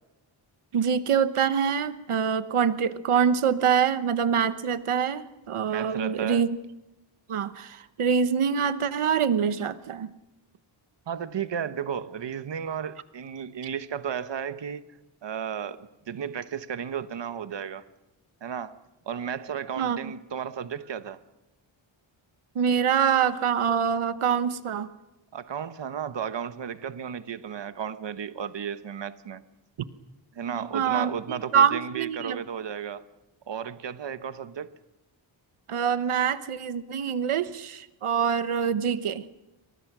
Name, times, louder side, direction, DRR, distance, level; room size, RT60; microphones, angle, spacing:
voice 1, 0.7-6.5 7.3-10.1 19.8-20.1 22.5-24.9 30.5-32.4 35.7-39.2, right 7 dB, 85° right, 12 dB, 1.1 m, -25 dB
voice 2, 5.7-6.4 11.1-14.8 15.2-15.8 16.1-17.8 18.4-18.8 19.1-21.2 25.3-29.4 30.3-33.1 33.5-34.7, right 8 dB, 60° right, 11 dB, 1.1 m, -34 dB
28.5 x 25.5 x 6.1 m, 0.95 s
wide cardioid pair, 135°, 49 cm